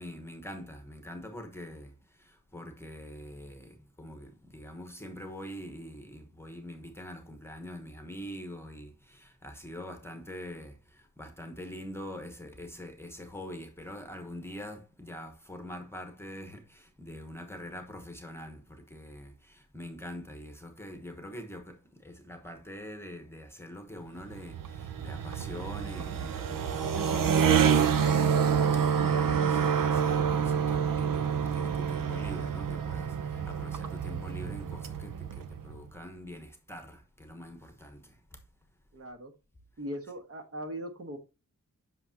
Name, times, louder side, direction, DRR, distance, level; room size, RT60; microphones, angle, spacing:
voice 1, 0.0-1.9 2.2-28.4 28.7-38.2, equal, 10° left, 1.0 m, -44 dB
sound 1, 24.2-35.8, right 7 dB, 90° right, 0.7 m, -28 dB
voice 2, 38.9-39.3 39.8-41.2, equal, 45° right, 1.3 m, -39 dB
7.9 x 6.0 x 2.8 m
wide cardioid pair, 155°, 32 cm